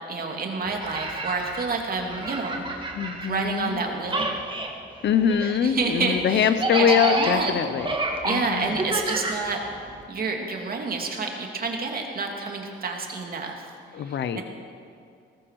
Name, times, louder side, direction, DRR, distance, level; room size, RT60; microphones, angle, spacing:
voice 1, 0.1-4.3 5.4-6.5 6.8-7.5 8.2-9.6 10.1-13.6 14.0-14.4, right 4 dB, 50° right, 2 dB, 2.6 m, -29 dB
sound 1, 0.6-3.8 4.0-10.0, right 2 dB, 25° right, 2.1 m, -29 dB
voice 2, 2.9-3.8 5.0-7.9 8.2-8.8 13.9-14.4, left 8 dB, 65° left, 11 dB, 0.9 m, -23 dB
19.0 x 15.0 x 4.8 m, 2.4 s
cardioid pair, 90°, 20 cm